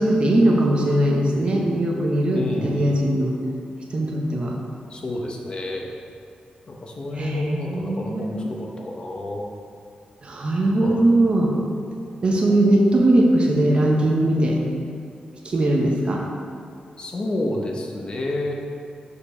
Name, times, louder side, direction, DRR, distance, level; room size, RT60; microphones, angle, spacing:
voice 1, 0.0-3.3 3.9-4.6 7.2-8.4 10.2-11.5 12.2-14.6 15.4-16.2, right 1 dB, 40° right, 0 dB, 0.8 m, -20 dB
voice 2, 2.3-3.0 4.9-5.9 6.7-9.5 10.8-11.0 17.0-18.6, left 1 dB, 35° left, 1 dB, 0.7 m, -30 dB
6.8 x 5.0 x 5.4 m, 2.3 s
wide cardioid pair, 170°, 3 cm